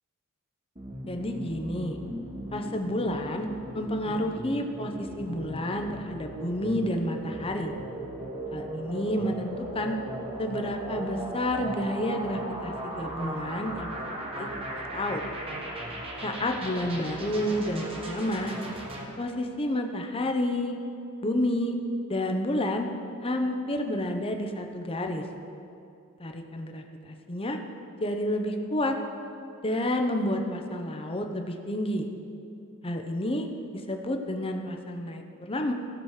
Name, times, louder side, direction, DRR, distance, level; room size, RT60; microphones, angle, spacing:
sound 1, 0.8-19.0, right 1 dB, 25° right, 1.3 m, -37 dB
voice 1, 1.1-2.0 2.5-3.5 3.7-7.7 8.5-10.0 10.4-15.2 16.2-18.6 19.2-20.8 21.2-21.8 22.1-22.9 23.2-25.2 26.2-27.6 28.0-29.0 29.6-32.1 32.8-33.5 33.9-35.7, left 1 dB, 25° left, 4 dB, 0.8 m, -30 dB
16.0 x 6.2 x 4.9 m, 2.7 s
head